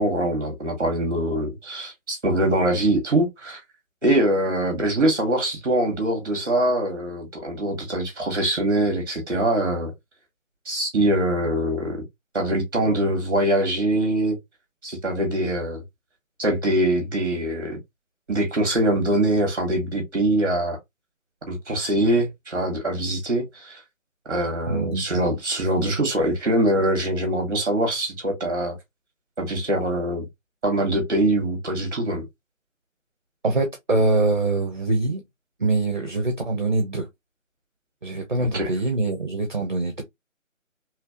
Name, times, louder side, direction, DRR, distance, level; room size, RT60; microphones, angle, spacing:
voice 1, 0.0-3.6 4.0-9.9 10.6-12.0 12.3-14.4 14.8-15.8 16.4-17.8 18.3-20.8 21.5-23.8 24.3-28.8 29.4-30.2 30.6-32.2 38.5-38.7, right 1 dB, 15° right, 1.1 m, -23 dB
voice 2, 24.7-25.2 33.4-35.2 35.6-37.1 38.0-40.0, right 2 dB, 35° right, 0.6 m, -24 dB
3.3 x 2.8 x 2.4 m
figure-of-eight pair, 155°, 40 cm